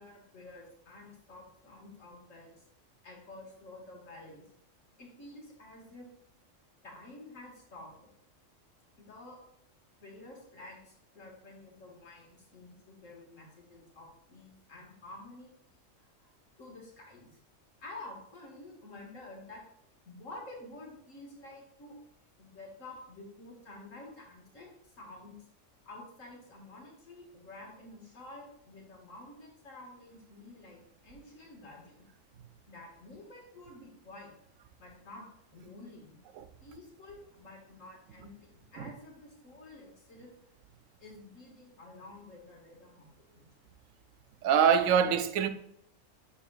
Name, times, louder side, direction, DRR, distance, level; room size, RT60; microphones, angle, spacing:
voice 1, 0.0-2.5 3.0-4.4 5.0-6.1 6.8-8.1 9.0-9.4 10.0-15.5 16.0-16.3 16.6-17.3 17.8-19.7 20.1-22.0 22.4-25.4 25.9-32.1 32.7-34.3 34.8-36.2 36.6-40.3 41.0-43.5, left 2 dB, 90° left, 2.2 m, -50 dB
voice 2, 44.4-45.5, right 8 dB, 85° right, 1.0 m, -24 dB
11.5 x 4.1 x 2.4 m
omnidirectional pair, 1.3 m